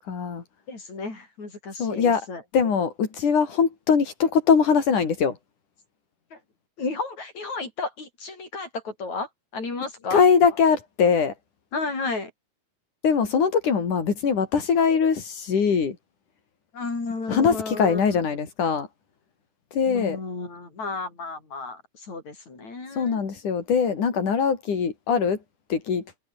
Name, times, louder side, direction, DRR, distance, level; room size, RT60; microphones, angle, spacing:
voice 1, 0.1-0.4 1.8-2.3 2.5-5.3 10.1-11.3 13.0-16.0 17.3-18.9 19.7-20.2 23.0-25.4 25.7-26.0, left 6 dB, 85° left, 5.3 m, -22 dB
voice 2, 0.7-2.4 6.3-6.4 6.8-10.2 11.7-12.3 16.7-18.1 19.9-23.2, left 3 dB, 65° left, 9.1 m, -33 dB
omnidirectional pair, 3.5 m